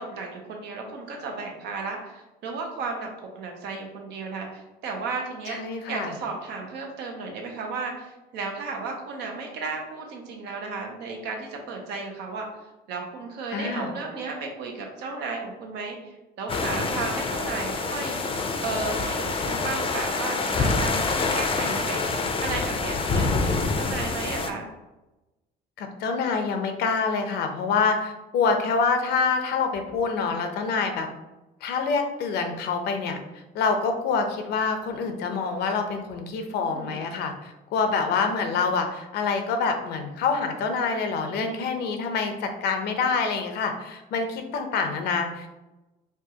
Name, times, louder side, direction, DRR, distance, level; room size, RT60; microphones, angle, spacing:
voice 1, 0.0-3.1 3.4-5.6 5.9-12.5 12.9-18.2 18.6-24.7 36.7-37.0 41.4-41.7, right 4 dB, 80° right, 1 dB, 0.9 m, -34 dB
voice 2, 5.5-6.1 13.5-13.9 25.8-31.1 31.6-45.6, left 5 dB, 75° left, 6 dB, 0.6 m, -26 dB
sound 1, 16.5-24.5, left 3 dB, 30° left, 0.5 m, -26 dB
4.5 x 2.5 x 2.8 m, 1.0 s
cardioid pair, 110°, 17 cm